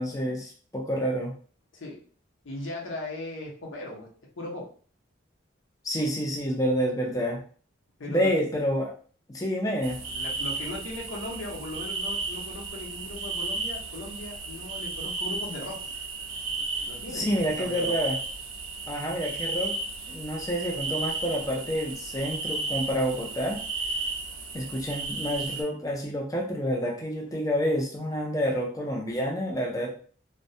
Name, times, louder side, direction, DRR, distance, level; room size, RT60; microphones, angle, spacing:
voice 1, 0.0-1.3 5.8-7.4 8.1-8.9 9.3-10.0 17.1-18.2 18.9-19.7 20.1-23.6 24.5-29.9, equal, 15° left, -1 dB, 0.4 m, -28 dB
voice 2, 2.4-4.1 4.4-4.7 8.0-8.3 10.1-15.9 16.9-18.0, left 2 dB, 75° left, -2 dB, 0.7 m, -38 dB
sound 1, 9.8-25.6, right 3 dB, 80° right, 0.6 m, -34 dB
2.2 x 2.1 x 2.6 m, 0.43 s
head